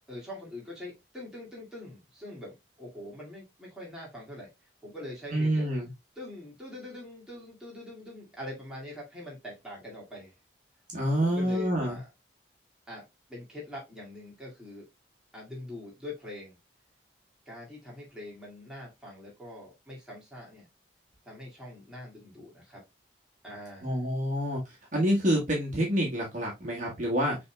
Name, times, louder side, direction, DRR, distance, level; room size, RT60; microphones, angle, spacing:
voice 1, 0.1-4.5 4.8-5.6 6.2-10.4 11.2-12.1 12.9-13.0 13.3-14.9 15.3-16.6 17.5-20.7 21.2-22.8 23.4-24.0, left 1 dB, 5° right, 2.1 m, -43 dB
voice 2, 5.3-5.9 10.9-12.0 23.8-24.6 24.9-27.4, equal, 40° right, 1.5 m, -27 dB
6.1 x 3.6 x 2.3 m
head